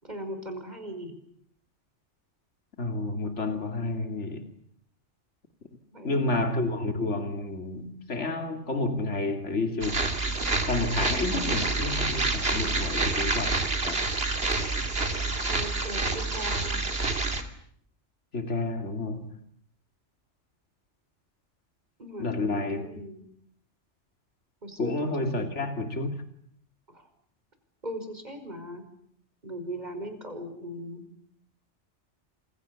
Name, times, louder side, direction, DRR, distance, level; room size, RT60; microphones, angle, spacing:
voice 1, 0.0-1.1 5.9-6.6 15.5-16.8 22.0-23.3 24.6-25.5 26.9-27.1 27.8-28.8 29.4-31.0, right 1 dB, 40° right, 5.7 m, -39 dB
voice 2, 2.8-4.5 6.0-10.0 10.7-13.6 13.8-14.0 18.3-19.2 22.2-22.8 24.8-26.1, left 2 dB, 85° left, 3.0 m, -30 dB
sound 1, 9.8-17.4, right 3 dB, 60° right, 3.0 m, -28 dB
29.5 x 27.5 x 7.1 m
omnidirectional pair, 1.2 m